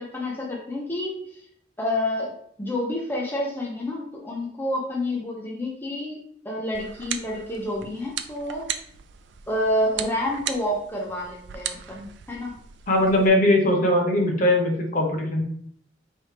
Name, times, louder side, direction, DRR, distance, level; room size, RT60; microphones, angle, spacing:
voice 1, 0.0-1.4 1.8-8.7 9.5-12.6, left 1 dB, 10° left, -3 dB, 0.6 m, -29 dB
sound 1, 6.7-13.3, right 9 dB, 65° right, 0.3 m, -37 dB
voice 2, 12.9-15.4, left 1 dB, 45° left, 1 dB, 0.9 m, -20 dB
4.2 x 3.3 x 3.3 m, 0.63 s
head